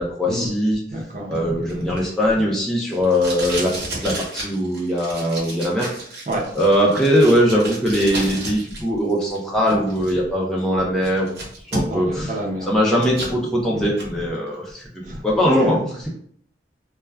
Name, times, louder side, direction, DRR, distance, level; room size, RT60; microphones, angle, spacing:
voice 1, 0.0-0.8 1.3-3.7 4.0-5.9 6.6-11.3 11.7-12.4 12.7-14.9 15.2-15.8, equal, 5° left, -4 dB, 0.4 m, -20 dB
voice 2, 0.9-1.9 6.3-6.5 11.9-12.8 13.7-13.8 15.0-15.9, equal, 45° right, -3 dB, 0.7 m, -27 dB
Packing tape duct tape, 1.3-8.8 9.1-10.1 10.6-10.7 11.0-12.2 12.5-13.4 13.8-14.1, right 1 dB, 70° right, 1.0 m, -32 dB
2.3 x 2.3 x 3.2 m, 0.62 s
head